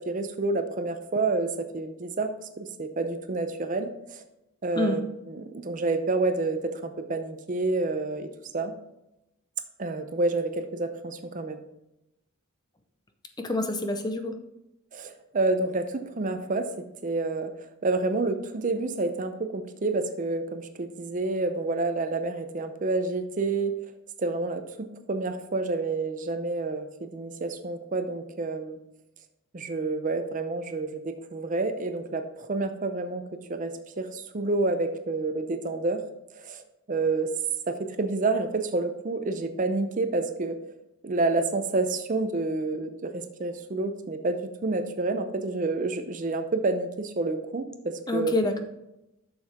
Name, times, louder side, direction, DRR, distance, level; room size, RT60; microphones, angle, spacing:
voice 1, 0.0-2.3 2.6-4.2 4.6-8.3 8.5-8.7 9.8-11.6 14.9-23.8 24.2-28.8 29.5-33.2 33.5-36.0 36.3-36.6 36.9-37.3 37.7-40.6 41.0-48.3, right 3 dB, 35° right, 8 dB, 0.5 m, -29 dB
voice 2, 13.4-14.4 48.1-48.6, left 2 dB, 20° left, 6 dB, 0.5 m, -27 dB
7.8 x 6.4 x 3.6 m, 0.89 s
head